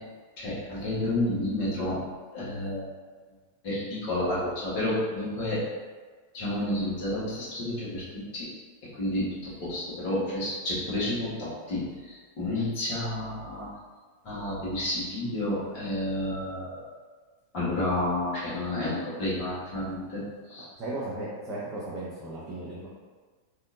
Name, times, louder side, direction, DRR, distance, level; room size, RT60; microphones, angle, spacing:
voice 1, 0.4-2.0 2.3-2.8 3.6-5.6 6.3-8.5 9.0-13.7 14.2-16.9 17.5-20.2 20.5-20.6, left 1 dB, 45° left, -8 dB, 1.4 m, -30 dB
voice 2, 20.8-22.9, right 2 dB, 20° right, -9 dB, 0.7 m, -35 dB
3.5 x 2.6 x 2.5 m, 1.4 s
figure-of-eight pair, 90°, 0 cm